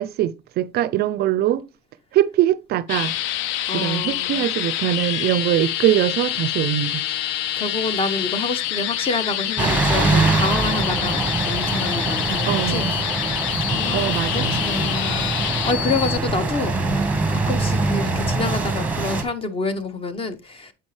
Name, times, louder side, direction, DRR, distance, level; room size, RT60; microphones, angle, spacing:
voice 1, 0.0-1.7 2.1-3.1 3.7-7.0 12.5-13.0 13.9-14.6, right 12 dB, 50° right, 0.4 m, -22 dB
sound 1, 2.9-16.3 16.9-17.0, left 13 dB, 65° left, 0.4 m, -26 dB
voice 2, 3.7-4.4 7.6-11.2 11.5-20.7, left 3 dB, 25° left, 0.9 m, -28 dB
sound 2, 9.6-19.2, right 3 dB, 5° right, 1.2 m, -23 dB
7.7 x 5.3 x 3.2 m
cardioid pair, 125°, 21 cm